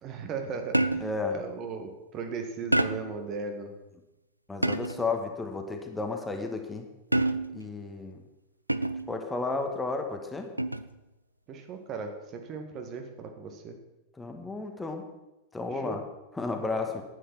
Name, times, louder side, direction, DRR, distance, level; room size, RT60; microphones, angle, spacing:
voice 1, 0.0-1.1 1.3-3.7 11.5-13.8 15.7-16.0, right 5 dB, 35° right, 5 dB, 1.9 m, -37 dB
sound 1, 0.7-1.3 2.7-3.2 4.6-5.1 7.1-7.7 8.7-9.2 10.6-11.0, right 2 dB, 85° right, 0.5 m, -27 dB
voice 2, 1.0-1.4 4.5-6.9 7.5-8.2 9.1-10.5 14.2-15.1 15.5-16.0 16.3-17.0, left 3 dB, 10° left, 4 dB, 1.9 m, -32 dB
11.0 x 9.3 x 6.1 m, 0.99 s
figure-of-eight pair, 90°, 0 cm